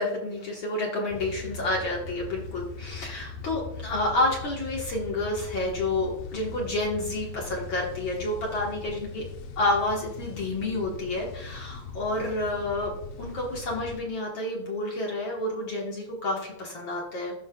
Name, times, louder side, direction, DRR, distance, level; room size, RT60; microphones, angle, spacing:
voice 1, 0.0-9.3 9.6-17.3, left 2 dB, 60° left, -2 dB, 1.3 m, -29 dB
sound 1, 1.1-14.0, left 5 dB, 80° left, 1.6 m, -40 dB
16.0 x 5.5 x 2.3 m, 0.82 s
omnidirectional pair, 4.0 m